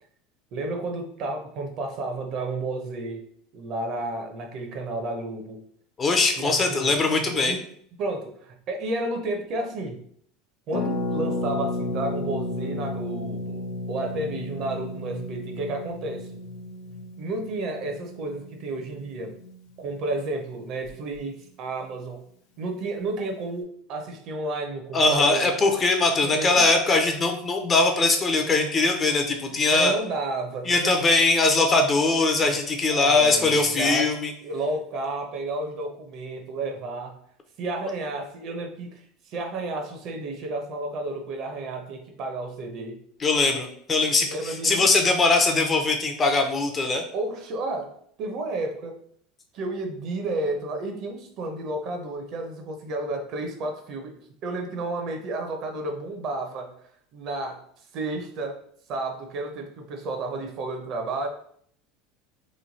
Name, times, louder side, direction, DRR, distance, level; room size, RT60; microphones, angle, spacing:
voice 1, 0.5-3.2 3.5-5.6 6.4-7.6 8.0-10.0 10.7-16.3 17.2-19.3 19.8-22.2 22.6-25.5 26.1-26.7 29.6-30.9 32.9-34.1 34.4-37.2 37.6-43.0 44.3-44.7 47.1-49.0 49.5-56.7 57.1-57.6 57.9-58.6 58.9-61.3, right 2 dB, 45° right, 4 dB, 0.7 m, -31 dB
voice 2, 6.0-7.6 24.9-29.9 30.7-34.3 43.2-47.0, left 3 dB, 20° left, 4 dB, 0.5 m, -21 dB
Harp, 10.7-20.3 20.6-20.7 20.8-21.2, left 2 dB, 70° left, 0.6 m, -33 dB
3.1 x 2.2 x 3.9 m, 0.63 s
supercardioid pair, 145°, 0 cm